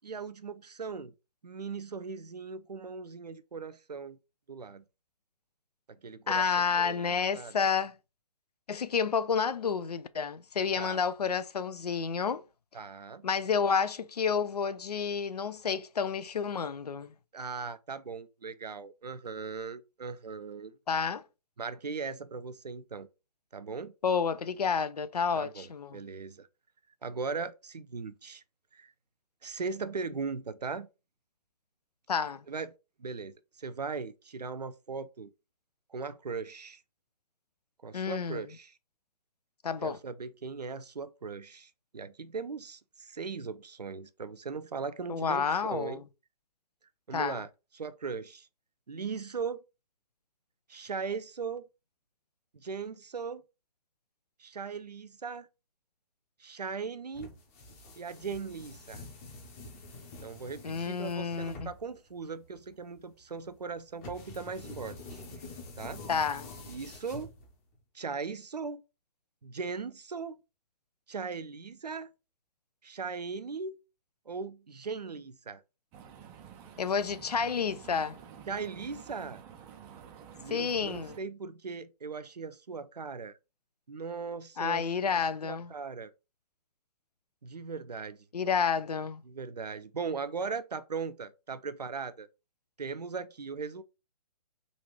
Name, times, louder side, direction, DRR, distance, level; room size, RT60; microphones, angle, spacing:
voice 1, 0.0-1.1 1.4-4.2 4.5-4.8 5.9-6.5 6.7-7.5 10.8-11.0 12.7-13.2 17.3-20.8 21.6-23.1 23.5-23.9 25.4-26.5 27.0-28.4 28.7-28.9 29.4-30.9 32.5-32.7 33.0-35.3 35.9-36.8 37.8-38.8 39.8-46.0 47.1-47.5 47.7-48.5 48.9-49.6 50.7-51.6 52.5-53.4 54.4-55.5 56.4-57.3 58.0-59.0 60.2-65.2 65.8-66.0 66.7-67.3 67.9-68.8 69.4-70.4 71.1-72.1 72.8-73.8 74.3-75.6 78.5-79.4 80.4-83.4 83.9-86.1 87.4-88.2 89.3-92.3 92.8-93.8, right 5 dB, 85° right, 0.5 m, -39 dB
voice 2, 6.3-7.9 8.7-12.4 13.2-17.1 20.9-21.2 24.0-26.0 32.1-32.4 37.9-38.5 39.6-40.0 45.1-46.0 47.1-47.4 60.6-61.7 66.1-66.5 76.8-78.2 80.5-81.1 84.6-85.7 88.3-89.2, left 6 dB, 75° left, 0.4 m, -30 dB
sound 1, 57.1-67.7, left 2 dB, 25° left, 0.8 m, -47 dB
sound 2, 75.9-81.2, right 8 dB, 10° right, 0.4 m, -50 dB
3.9 x 2.4 x 3.2 m
figure-of-eight pair, 130°, 20 cm